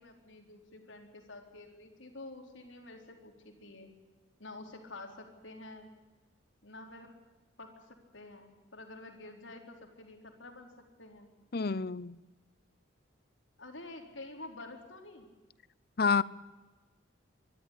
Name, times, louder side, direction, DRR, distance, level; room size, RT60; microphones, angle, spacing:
voice 1, 0.0-3.9 4.4-5.9 6.6-7.1 7.6-10.7 11.0-11.3 13.6-15.3, left 2 dB, 75° left, 4.2 m, -49 dB
voice 2, 11.5-12.2 16.0-16.2, left 5 dB, 50° left, 0.7 m, -28 dB
24.5 x 12.5 x 9.9 m
head